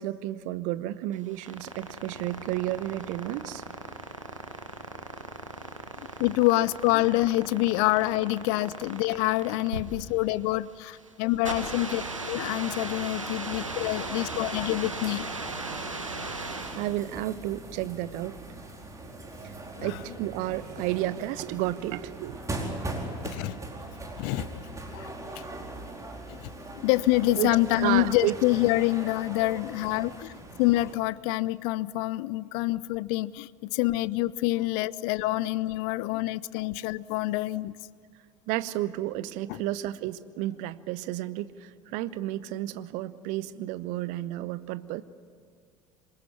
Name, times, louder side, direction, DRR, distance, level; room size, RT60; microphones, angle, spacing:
voice 1, 0.0-3.6 16.7-18.4 18.9-19.1 19.4-22.4 27.3-28.3 38.5-45.0, right 15 dB, 50° right, 1.0 m, -32 dB
sound 1, 1.1-17.0, right 3 dB, 85° right, 1.6 m, -37 dB
voice 2, 6.2-15.3 19.8-20.0 23.2-23.6 24.2-24.5 24.9-25.4 26.3-37.8 39.5-39.6, left 18 dB, 55° left, 0.6 m, -27 dB
sound 2, 13.5-30.9, right 2 dB, 20° right, 4.6 m, -41 dB
27.0 x 22.5 x 9.4 m
figure-of-eight pair, 65°, 16 cm